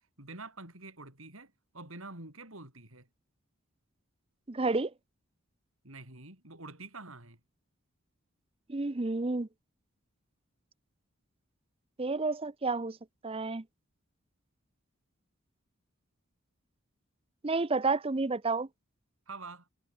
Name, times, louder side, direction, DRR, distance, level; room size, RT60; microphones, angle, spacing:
voice 1, 0.2-3.1 5.8-7.4 19.3-19.7, right 3 dB, 80° right, 7.2 m, -47 dB
voice 2, 4.5-4.9 8.7-9.5 12.0-13.0 13.2-13.6 17.4-18.7, right 3 dB, 25° right, 0.6 m, -30 dB
head